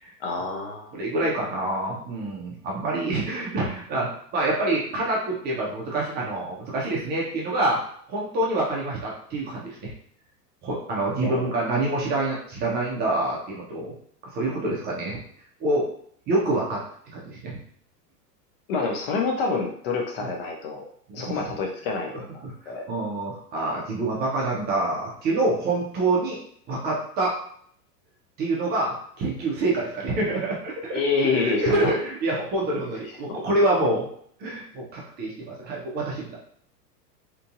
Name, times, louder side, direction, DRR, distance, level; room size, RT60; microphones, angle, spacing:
voice 1, 0.2-0.9 11.2-11.5 18.7-20.8 21.1-22.8 30.9-31.9 33.3-33.4, left 4 dB, 40° left, 0 dB, 0.5 m, -27 dB
voice 2, 0.9-7.8 8.1-9.9 10.6-13.9 14.3-15.2 15.6-15.9 16.3-16.8 17.1-17.6 21.1-21.4 22.1-26.4 26.7-27.3 28.4-31.0 31.3-34.1 34.4-36.4, right 2 dB, 20° right, -3 dB, 0.5 m, -26 dB
2.9 x 2.5 x 2.4 m, 0.63 s
figure-of-eight pair, 95°, 49 cm